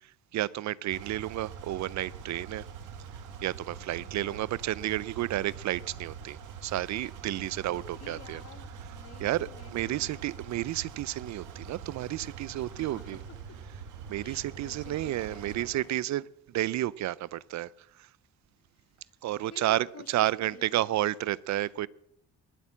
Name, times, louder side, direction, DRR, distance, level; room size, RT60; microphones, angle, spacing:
voice 1, 0.0-2.7 3.4-8.4 9.2-13.2 14.1-18.1 19.2-21.9, right 14 dB, 65° right, 0.5 m, -31 dB
sound 1, 0.9-16.0, right 6 dB, 85° right, 2.1 m, -44 dB
voice 2, 4.0-4.5 7.4-10.3 12.5-13.6 14.2-15.9 18.7-19.2 19.5-20.9, left 6 dB, 55° left, 2.1 m, -52 dB
21.0 x 8.2 x 7.3 m
cardioid pair, 90°, 30 cm